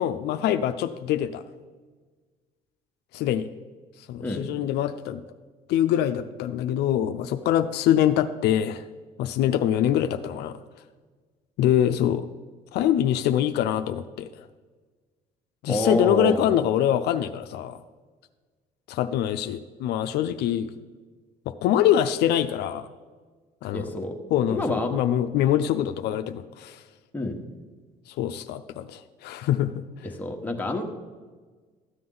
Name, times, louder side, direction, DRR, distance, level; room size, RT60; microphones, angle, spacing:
voice 1, 0.0-1.4 3.1-3.5 4.1-5.2 5.7-8.8 9.2-10.6 11.6-12.3 12.7-14.3 15.6-17.8 18.9-20.7 21.5-22.9 23.6-23.9 24.3-26.8 28.1-29.8, left 11 dB, 75° left, 9 dB, 0.5 m, -24 dB
voice 2, 15.6-16.5 23.7-24.1 24.5-24.9 27.1-27.3 30.2-30.8, left 1 dB, 10° left, 2 dB, 1.2 m, -27 dB
13.0 x 7.7 x 3.9 m, 1.4 s
cardioid pair, 110°, 17 cm